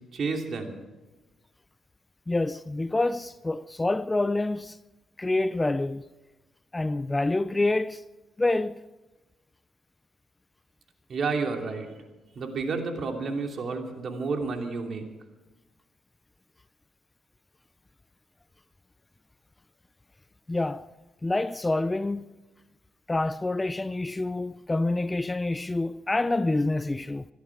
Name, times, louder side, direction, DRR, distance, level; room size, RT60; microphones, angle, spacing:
voice 1, 0.1-0.8 11.1-11.9 12.3-15.0, right 4 dB, 50° right, 2.8 m, -30 dB
voice 2, 2.3-4.8 5.2-6.0 6.7-8.0 8.4-8.8 20.5-20.9 21.2-22.2 23.1-27.3, left 2 dB, 15° left, 0.4 m, -27 dB
22.0 x 12.5 x 4.8 m
cardioid pair, 90°, 0 cm